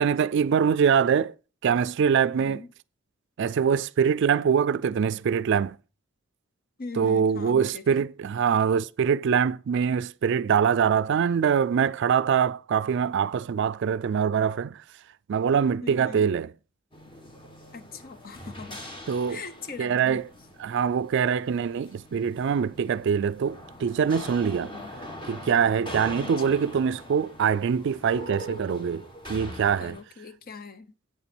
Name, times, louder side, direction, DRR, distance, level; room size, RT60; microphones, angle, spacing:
voice 1, 0.0-1.3 1.6-2.6 3.4-5.8 7.0-14.8 15.3-16.5 19.1-19.4 19.8-20.2 20.6-24.7 25.3-29.0 29.3-30.0, right 7 dB, 60° right, 0.4 m, -24 dB
voice 2, 2.3-2.7 6.8-8.1 15.8-16.3 17.7-18.8 19.3-20.2 24.6-24.9 26.2-26.8 29.8-31.0, left 4 dB, 50° left, 0.8 m, -41 dB
sound 1, 16.9-30.0, equal, 25° left, 1.6 m, -42 dB
8.3 x 7.1 x 4.4 m
head